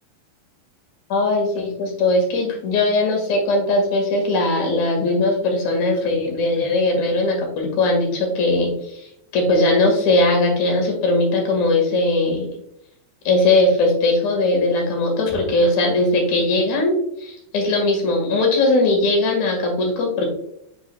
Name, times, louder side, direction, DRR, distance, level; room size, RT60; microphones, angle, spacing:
voice 1, 1.1-12.5 13.2-20.3, left 2 dB, 55° left, 1 dB, 2.9 m, -19 dB
7.4 x 6.0 x 2.3 m, 0.76 s
omnidirectional pair, 4.4 m